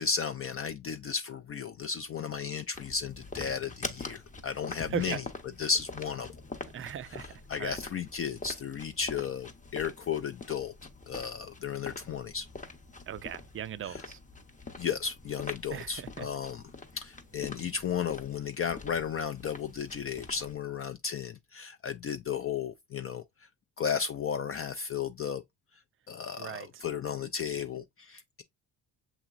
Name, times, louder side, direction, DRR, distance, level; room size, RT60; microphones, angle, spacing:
voice 1, 0.0-5.2 5.6-6.3 7.5-10.7 11.1-12.5 13.8-14.0 14.8-16.6 16.9-23.5 23.8-25.4 26.1-28.4, left 7 dB, 35° left, 0.4 m, -34 dB
sound 1, 2.7-20.6, left 3 dB, 20° left, 0.8 m, -45 dB
voice 2, 4.9-5.2 6.7-7.3 7.6-7.8 13.1-14.2 15.7-16.3 26.4-26.7, right 9 dB, 35° right, 0.4 m, -38 dB
6.9 x 2.9 x 2.4 m
supercardioid pair, 75°, 39 cm